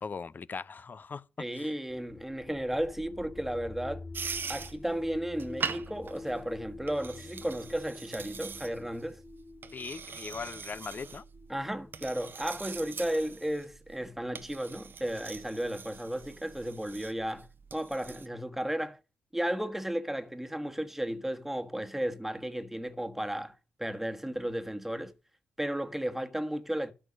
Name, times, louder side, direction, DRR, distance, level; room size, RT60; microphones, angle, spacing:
voice 1, 0.0-1.2 1.5-1.7 9.7-11.2, left 5 dB, 45° left, 0.7 m, -39 dB
voice 2, 1.4-4.0 4.5-9.2 11.5-19.0 19.3-25.1 25.6-26.9, right 1 dB, 5° right, 1.5 m, -34 dB
sound 1, 1.9-13.7, left 3 dB, 30° left, 2.5 m, -48 dB
sound 2, 4.1-18.3, right 6 dB, 50° right, 1.0 m, -43 dB
12.5 x 5.0 x 6.4 m
supercardioid pair, 50°, 4 cm